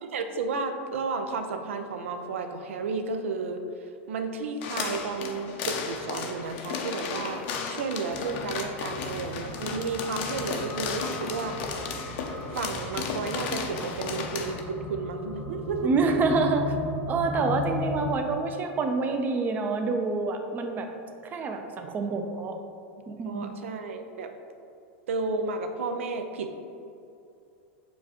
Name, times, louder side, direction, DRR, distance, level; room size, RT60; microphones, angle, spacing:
voice 1, 0.0-11.6 12.5-15.9 23.2-24.3 25.1-26.6, right 4 dB, 80° right, 7 dB, 0.4 m, -32 dB
sound 1, 4.6-14.6, left 5 dB, 60° left, 0.5 m, -34 dB
sound 2, 8.1-18.1, left 2 dB, 10° left, 0.8 m, -37 dB
voice 2, 15.8-16.7 17.1-20.9 21.2-22.6 23.1-23.4, right 4 dB, 25° right, 5 dB, 0.5 m, -27 dB
6.9 x 2.3 x 2.9 m, 2.6 s
hypercardioid pair, 110°, 7 cm